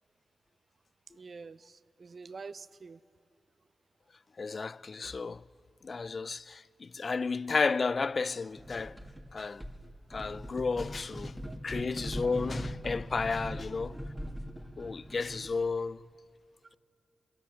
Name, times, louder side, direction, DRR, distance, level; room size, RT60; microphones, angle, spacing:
voice 1, 1.1-3.0 11.5-11.6 13.4-13.6, right 4 dB, 60° right, 0.6 m, -47 dB
voice 2, 4.4-5.4 5.8-9.0 9.3-9.6 10.1-11.4 11.6-14.0 14.8-16.0, left 4 dB, 55° left, 0.4 m, -32 dB
sound 1, 8.6-9.3 9.6-15.6, equal, 5° right, 2.2 m, -40 dB
23.0 x 17.0 x 7.1 m
cardioid pair, 50°, 0 cm